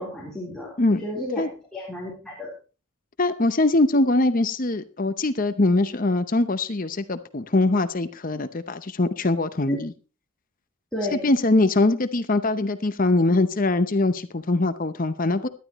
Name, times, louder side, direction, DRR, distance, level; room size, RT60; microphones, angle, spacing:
voice 1, 0.0-0.7 1.0-1.5 1.7-2.5 9.7-9.8 10.9-11.2, left 1 dB, 5° left, 3.8 m, -31 dB
voice 2, 3.2-9.9 11.1-15.5, left 2 dB, 40° left, 0.7 m, -22 dB
18.0 x 12.0 x 3.1 m
head